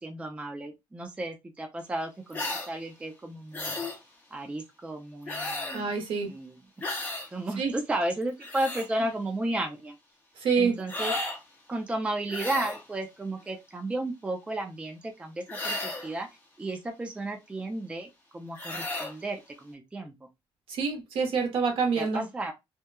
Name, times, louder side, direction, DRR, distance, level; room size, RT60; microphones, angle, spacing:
voice 1, 0.0-3.9 4.3-5.9 6.2-6.6 7.3-10.0 10.6-11.1 11.7-16.3 16.6-20.1 21.9-22.5, right 1 dB, 10° right, 0.4 m, -33 dB
sound 1, 2.3-2.7 3.5-4.0 5.3-5.9 6.8-7.3 8.2-8.9 10.9-11.4 12.3-12.8 15.5-16.1 18.6-19.1, left 2 dB, 20° left, 0.9 m, -33 dB
voice 2, 5.7-6.3 7.6-7.7 10.4-10.8 20.7-22.2, right 5 dB, 65° right, 1.0 m, -26 dB
2.9 x 2.2 x 2.2 m
cardioid pair, 150°, 10 cm